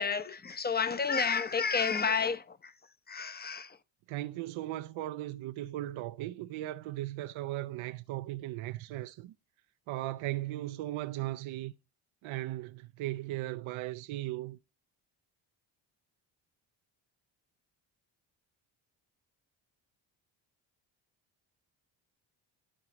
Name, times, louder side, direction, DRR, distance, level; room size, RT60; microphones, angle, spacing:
voice 1, 0.0-2.7 3.1-3.8, left 5 dB, 20° left, 0.7 m, -31 dB
voice 2, 4.1-9.3 9.9-11.7 12.2-14.6, right 15 dB, 70° right, 0.6 m, -37 dB
11.0 x 4.5 x 3.0 m
supercardioid pair, 65°, 50 cm